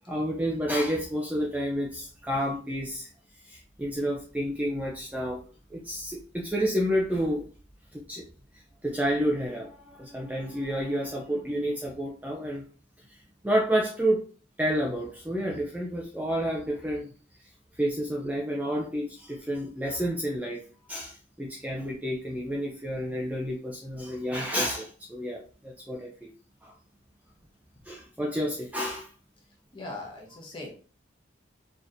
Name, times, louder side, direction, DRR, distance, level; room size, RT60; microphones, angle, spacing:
voice 1, 0.1-3.1 3.5-5.4 5.7-7.5 7.9-8.2 8.8-12.7 13.4-14.2 14.6-17.1 17.8-20.6 20.9-26.3 26.6-26.7 27.9-29.1, equal, 10° right, -3 dB, 0.5 m, -30 dB
voice 2, 29.7-30.7, left 2 dB, 25° left, -2 dB, 1.0 m, -39 dB
4.0 x 2.9 x 2.5 m, 0.37 s
head